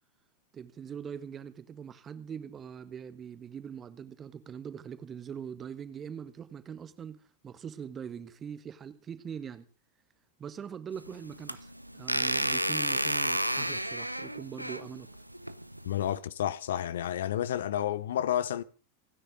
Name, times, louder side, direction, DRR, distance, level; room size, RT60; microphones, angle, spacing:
voice 1, 0.5-7.2 7.4-9.7 10.4-15.1, right 7 dB, 25° right, 1.5 m, -42 dB
sound 1, 10.9-16.2, right 1 dB, 90° right, 0.7 m, -32 dB
voice 2, 15.8-18.6, left 11 dB, 60° left, 0.7 m, -30 dB
29.5 x 9.9 x 3.8 m
figure-of-eight pair, 90°, 0 cm